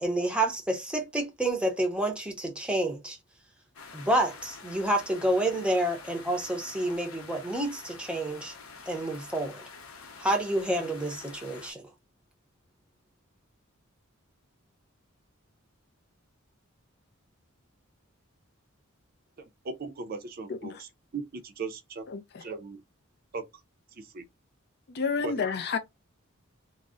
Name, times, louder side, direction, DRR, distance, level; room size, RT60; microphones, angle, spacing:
voice 1, 0.0-3.2 3.9-8.5 8.9-9.6 10.2-11.9, right 1 dB, 5° right, 0.6 m, -29 dB
sound 1, 3.7-11.7, left 4 dB, 90° left, 0.7 m, -47 dB
voice 2, 19.4-22.0 22.4-22.8 23.3-23.4 24.0-24.3 25.2-25.4, right 4 dB, 45° right, 0.5 m, -38 dB
voice 3, 20.5-20.8 22.1-22.4 24.9-25.8, left 5 dB, 50° left, 0.4 m, -30 dB
2.3 x 2.0 x 3.6 m
head